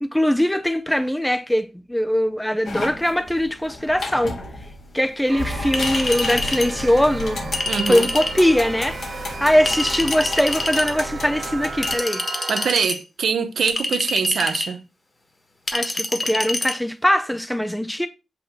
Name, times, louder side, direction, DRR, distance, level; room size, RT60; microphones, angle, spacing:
voice 1, 0.0-4.4 4.9-7.4 7.9-9.0 9.4-12.2 15.7-18.1, equal, 5° left, 0.5 m, -21 dB
sound 1, 2.6-11.9, left 2 dB, 80° left, 1.8 m, -32 dB
sound 2, 5.3-12.7, right 5 dB, 65° right, 2.0 m, -35 dB
Chink clink, 5.7-6.7 7.5-8.4 9.7-10.9 11.8-13.0 13.7-14.7 15.7-16.7, left 2 dB, 30° left, 1.4 m, -26 dB
voice 2, 7.7-8.1 12.5-14.8, right 6 dB, 85° right, 0.8 m, -23 dB
8.5 x 3.0 x 6.4 m
wide cardioid pair, 110°, 0 cm